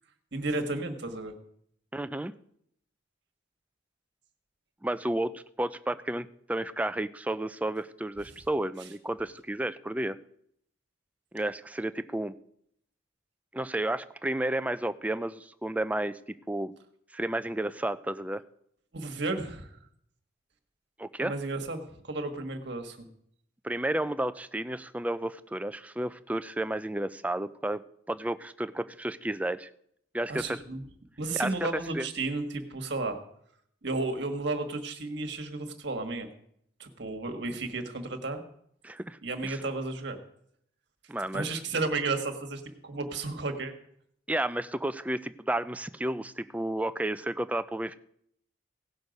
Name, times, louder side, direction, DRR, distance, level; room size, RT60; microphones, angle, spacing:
voice 1, 0.3-1.3 18.9-19.8 21.2-23.1 30.3-30.8 31.2-33.2 33.8-36.3 36.8-38.4 39.2-40.2 41.3-43.7, right 3 dB, 60° right, 6 dB, 1.5 m, -33 dB
voice 2, 1.9-2.3 4.8-10.2 11.3-12.3 13.5-16.2 16.5-16.7 17.1-18.4 21.0-21.3 23.6-27.8 28.1-29.7 30.1-30.6 31.4-31.5 31.9-32.1 38.8-39.2 39.4-39.6 41.1-41.6 44.3-48.0, right 1 dB, 5° right, 12 dB, 0.4 m, -32 dB
17.0 x 6.4 x 5.3 m, 0.70 s
head